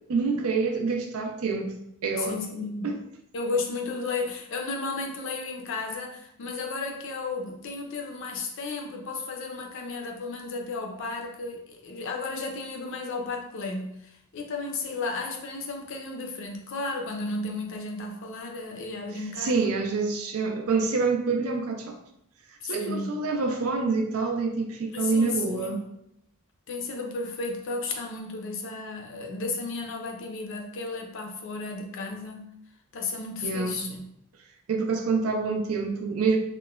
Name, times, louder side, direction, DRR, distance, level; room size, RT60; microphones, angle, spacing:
voice 1, 0.1-1.8 2.0-2.4 2.8-3.0 19.4-22.0 22.6-25.8 33.4-33.8 34.7-36.4, right 4 dB, 70° right, 4 dB, 0.4 m, -26 dB
voice 2, 2.2-2.9 3.3-19.7 22.6-23.1 24.9-26.0 26.7-32.5 32.9-34.0, left 3 dB, 60° left, 2 dB, 0.4 m, -33 dB
2.9 x 2.1 x 2.3 m, 0.77 s
head